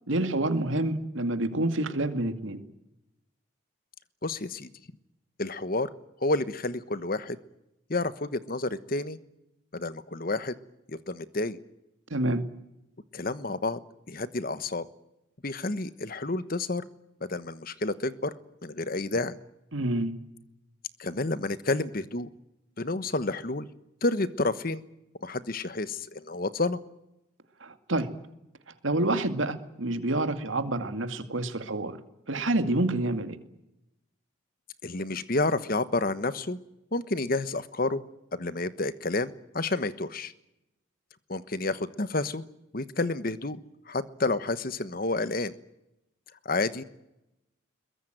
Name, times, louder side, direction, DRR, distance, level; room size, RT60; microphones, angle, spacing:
voice 1, 0.1-2.6 12.1-12.5 19.7-20.1 27.6-28.1 28.8-32.0 32.3-33.4, right 2 dB, 85° right, 9 dB, 2.2 m, -28 dB
voice 2, 4.2-4.7 5.4-5.9 6.2-7.4 7.9-9.2 9.7-10.5 10.9-11.6 13.1-13.8 14.1-14.9 15.4-16.9 17.3-18.3 18.6-19.4 21.0-22.3 22.8-23.7 24.0-24.8 25.2-26.8 34.8-36.6 36.9-38.0 38.3-40.3 41.3-42.4 42.7-43.6 43.9-45.5 46.4-46.8, left 2 dB, 45° left, 14 dB, 1.2 m, -30 dB
22.5 x 21.0 x 9.1 m, 0.89 s
head